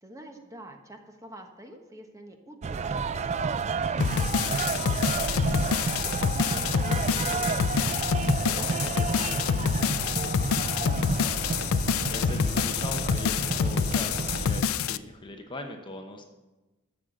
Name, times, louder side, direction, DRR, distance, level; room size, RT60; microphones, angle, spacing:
voice 1, 0.0-7.6 8.5-11.7, equal, 15° right, 4 dB, 1.1 m, -47 dB
sound 1, 2.6-14.6, right 4 dB, 30° right, 0.3 m, -30 dB
sound 2, 4.0-15.0, left 7 dB, 80° left, 0.4 m, -27 dB
voice 2, 12.1-14.6 14.9-16.2, left 2 dB, 25° left, 4 dB, 0.9 m, -40 dB
12.5 x 6.7 x 7.6 m, 1.1 s
head